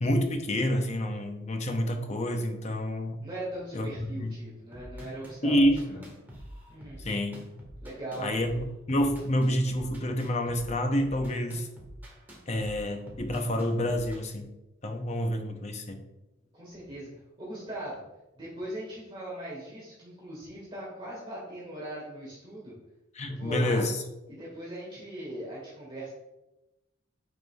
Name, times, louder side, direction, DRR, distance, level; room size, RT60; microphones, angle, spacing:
voice 1, 0.0-3.2 3.7-4.3 5.4-6.0 7.0-7.4 8.2-11.7 12.5-14.5 14.8-16.0 23.2-24.0, equal, 35° left, 5 dB, 0.7 m, -28 dB
voice 2, 3.2-5.6 5.9-6.1 6.7-7.1 7.8-8.3 16.5-18.0 18.4-22.7 23.3-23.9 24.3-26.1, right 1 dB, 25° right, -6 dB, 1.8 m, -39 dB
sound 1, 4.7-14.3, equal, 10° right, 1.5 m, -46 dB
9.2 x 5.0 x 2.4 m, 0.97 s
head